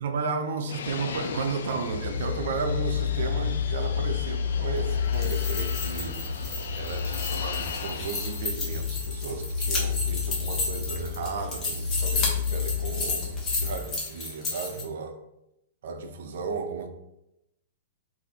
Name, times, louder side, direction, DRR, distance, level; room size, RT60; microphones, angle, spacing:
voice 1, 0.0-6.2 6.7-13.3 13.6-15.2 15.8-16.9, right 4 dB, 65° right, 0.6 m, -34 dB
Fixed-wing aircraft airplane, 0.7-8.5, left 6 dB, 75° left, 0.5 m, -38 dB
sound 1, 1.8-13.7, left 7 dB, 50° right, 1.1 m, -30 dB
sound 2, 5.0-14.8, left 3 dB, 20° left, 1.1 m, -33 dB
3.9 x 2.7 x 4.1 m
hypercardioid pair, 150°, 0 cm